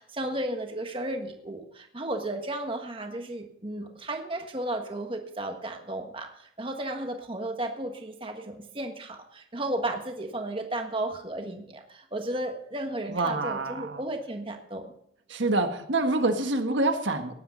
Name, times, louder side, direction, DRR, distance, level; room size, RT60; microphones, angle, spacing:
voice 1, 0.0-14.9, right 1 dB, 30° right, 4 dB, 1.5 m, -34 dB
voice 2, 13.1-14.0 15.3-17.3, right 2 dB, 85° right, 6 dB, 1.5 m, -26 dB
16.5 x 11.0 x 4.0 m, 0.72 s
head